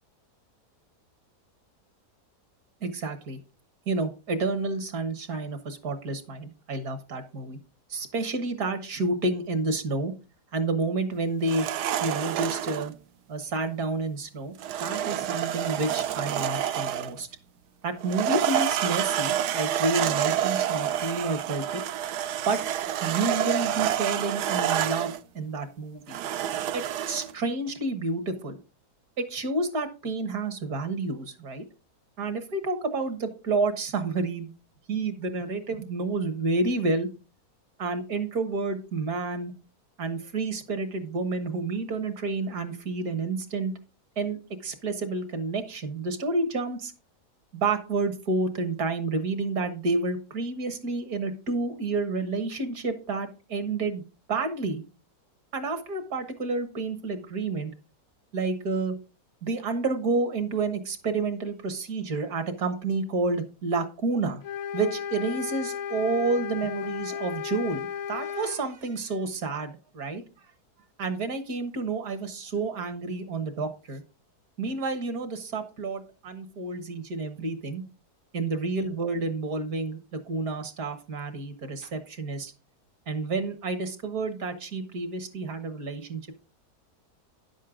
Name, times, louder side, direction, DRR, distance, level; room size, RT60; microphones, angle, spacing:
voice 1, 2.8-3.4 3.9-7.6 7.9-10.1 10.5-11.7 12.0-12.9 13.3-14.5 14.8-17.3 17.8-21.8 22.5-22.6 23.0-26.2 26.7-28.6 29.2-31.6 32.2-34.5 34.9-37.1 37.8-39.5 40.0-43.7 44.2-46.9 47.5-54.0 54.3-54.8 55.5-57.7 58.3-59.0 59.4-64.4 64.7-70.2 71.0-74.0 74.6-77.8 78.3-82.5 83.1-86.3, right 3 dB, 65° right, 8 dB, 1.9 m, -30 dB
sound 1, 11.4-12.9 14.6-17.2 18.0-25.2 26.1-27.3, right 11 dB, 85° right, 1.2 m, -28 dB
sound 2, 64.4-68.6, left 8 dB, 65° left, 0.7 m, -34 dB
10.5 x 7.5 x 3.8 m, 0.33 s
omnidirectional pair, 1.7 m